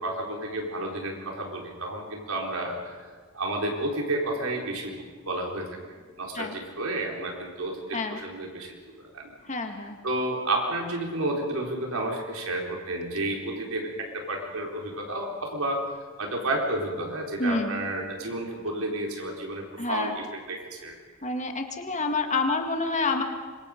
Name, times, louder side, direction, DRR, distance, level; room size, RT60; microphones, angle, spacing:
voice 1, 0.0-2.7 3.3-4.9 5.2-5.7 6.2-9.3 10.0-15.8 16.2-20.9, right 2 dB, 85° right, 0 dB, 4.5 m, -31 dB
voice 2, 9.4-10.0 17.4-17.8 19.8-20.2 21.2-23.2, left 3 dB, 35° left, 5 dB, 1.9 m, -28 dB
25.5 x 23.0 x 5.3 m, 1.5 s
head